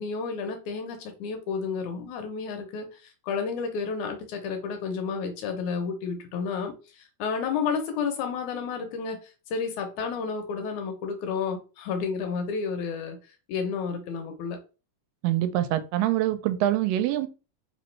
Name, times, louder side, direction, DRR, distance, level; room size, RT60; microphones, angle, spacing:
voice 1, 0.0-13.2 13.5-14.6, left 5 dB, 75° left, 2.0 m, -31 dB
voice 2, 15.2-17.3, right 13 dB, 90° right, 2.2 m, -25 dB
4.7 x 3.0 x 3.1 m
omnidirectional pair, 3.8 m